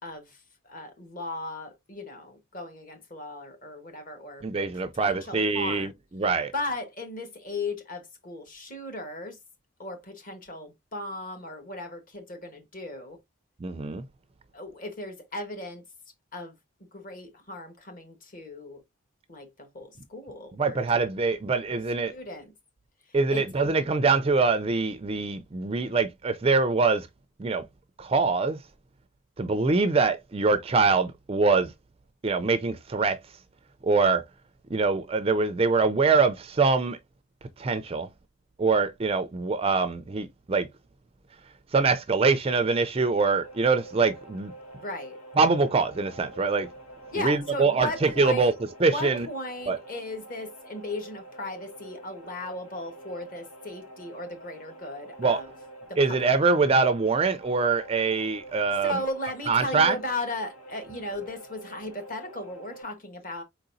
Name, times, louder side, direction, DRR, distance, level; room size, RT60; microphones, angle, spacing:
voice 1, 0.0-4.4 4.7-5.9 6.5-9.4 9.8-13.2 14.5-15.8 16.3-16.5 16.9-18.8 19.3-20.8 22.1-22.5 23.1-23.5 44.8-45.2 47.1-48.5 48.9-55.5 55.9-56.4 58.8-63.4, left 2 dB, 40° left, 1.3 m, -36 dB
voice 2, 4.4-6.5 13.6-14.0 20.6-22.1 23.1-27.1 27.4-27.6 28.0-28.6 29.4-31.7 32.2-33.2 33.8-34.2 34.7-37.0 37.6-38.1 38.6-40.7 41.7-44.5 45.4-46.7 47.2-48.5 48.8-49.3 49.7-49.8 55.2-55.4 56.0-59.0 59.5-60.0, right 4 dB, 25° right, 0.4 m, -24 dB
sound 1, 43.4-62.8, right 1 dB, 85° left, 1.9 m, -47 dB
4.5 x 3.9 x 2.6 m
head